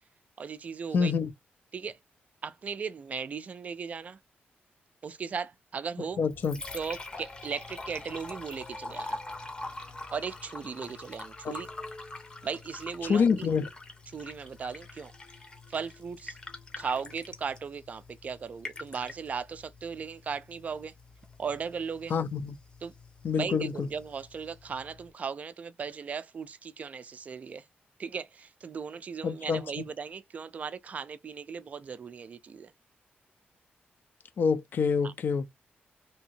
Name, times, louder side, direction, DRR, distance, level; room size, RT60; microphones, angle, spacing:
voice 1, 0.4-1.1 1.7-2.0 2.4-4.2 5.0-6.2 6.7-9.2 10.1-11.7 12.4-13.5 14.1-15.1 15.7-16.4 16.8-20.9 21.4-22.1 22.8-22.9 23.3-27.6 28.0-32.7 35.0-35.1, right 6 dB, 40° right, 0.3 m, -37 dB
voice 2, 0.9-1.3 6.2-6.6 11.4-11.5 13.0-13.7 22.1-22.6 23.2-23.9 29.2-29.6 34.4-35.5, left 5 dB, 55° left, 0.5 m, -26 dB
Liquid, 6.1-25.1, left 2 dB, 25° left, 0.7 m, -44 dB
2.8 x 2.7 x 2.7 m
wide cardioid pair, 140°, 4 cm